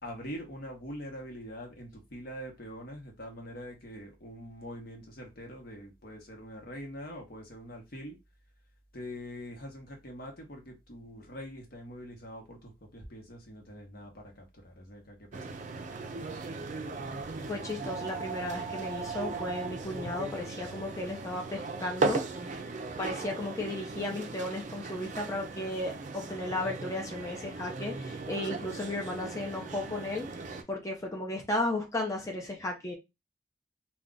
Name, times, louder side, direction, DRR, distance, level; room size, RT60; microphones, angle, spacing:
voice 1, 0.0-8.2 8.9-15.6, equal, 60° left, 1.0 m, -44 dB
sound 1, 15.3-30.6, right 3 dB, 45° right, 0.4 m, -37 dB
voice 2, 17.5-22.6 23.0-30.3 30.7-32.9, left 1 dB, 20° left, 0.5 m, -35 dB
2.4 x 2.2 x 3.8 m
head